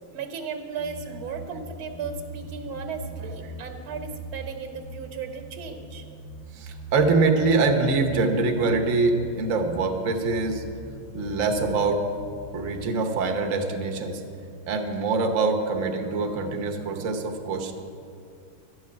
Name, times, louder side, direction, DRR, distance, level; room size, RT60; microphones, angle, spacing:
voice 1, 0.1-6.1, right 6 dB, 75° right, 5 dB, 1.9 m, -35 dB
sound 1, 0.8-12.9, right 1 dB, 85° left, 3.1 m, -41 dB
voice 2, 6.5-10.6 11.1-12.0 12.5-14.2 14.7-17.7, right 3 dB, 45° right, 3 dB, 1.2 m, -24 dB
12.5 x 6.3 x 9.6 m, 2.4 s
omnidirectional pair, 2.3 m